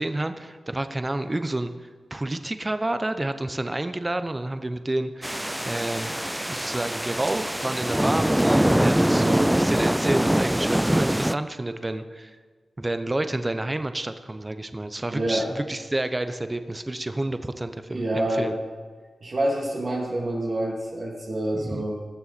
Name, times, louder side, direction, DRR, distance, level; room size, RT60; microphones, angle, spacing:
voice 1, 0.0-6.1 6.5-12.4 12.8-18.5 21.5-21.8, right 1 dB, 25° right, 10 dB, 0.9 m, -29 dB
sound 1, 5.2-11.3, equal, 10° right, 0.3 m, -23 dB
voice 2, 15.1-15.5 17.9-18.5 19.2-21.9, right 1 dB, 60° right, -3 dB, 2.5 m, -27 dB
18.5 x 7.0 x 4.2 m, 1.5 s
cardioid pair, 45°, 0 cm